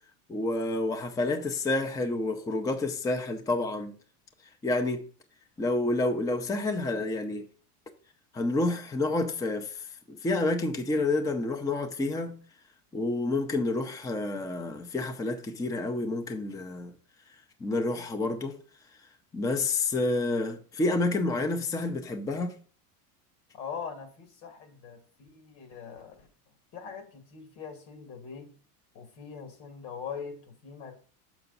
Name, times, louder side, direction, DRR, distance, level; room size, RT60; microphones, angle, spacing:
voice 1, 0.3-3.9 4.6-5.0 5.6-7.5 8.3-12.3 12.9-16.9 17.6-18.6 19.3-22.5, left 2 dB, 10° left, 0.5 m, -29 dB
voice 2, 23.5-26.3 26.7-28.5 28.9-30.9, left 6 dB, 80° left, 2.0 m, -42 dB
6.5 x 6.0 x 3.9 m
supercardioid pair, 125°, 47 cm